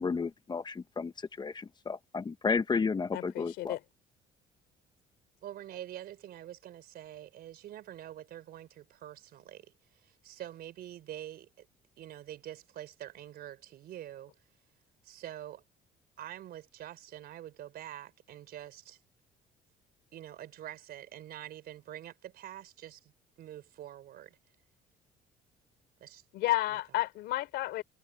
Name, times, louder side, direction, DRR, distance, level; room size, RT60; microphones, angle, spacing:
voice 1, 0.0-3.8, left 5 dB, 25° left, 0.9 m, -32 dB
voice 2, 3.1-3.8 26.3-27.8, left 16 dB, 80° left, 3.2 m, -32 dB
voice 3, 5.4-11.7 12.0-14.3 15.0-15.6 16.2-19.0 20.1-23.1 23.4-24.4 26.0-26.2 26.7-26.8, right 12 dB, 65° right, 4.2 m, -46 dB
cardioid pair, 110°, 17 cm